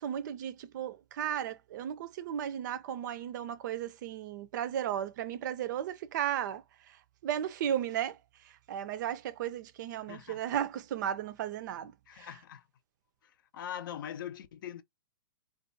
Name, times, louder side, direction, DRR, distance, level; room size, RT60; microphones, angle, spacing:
voice 1, 0.0-6.6 7.2-8.2 8.7-11.9 12.2-12.3, right 10 dB, 60° right, 0.4 m, -35 dB
voice 2, 10.0-10.4 12.1-12.6 13.5-14.8, left 10 dB, 70° left, 0.5 m, -42 dB
2.5 x 2.2 x 2.6 m
hypercardioid pair, 130°, 12 cm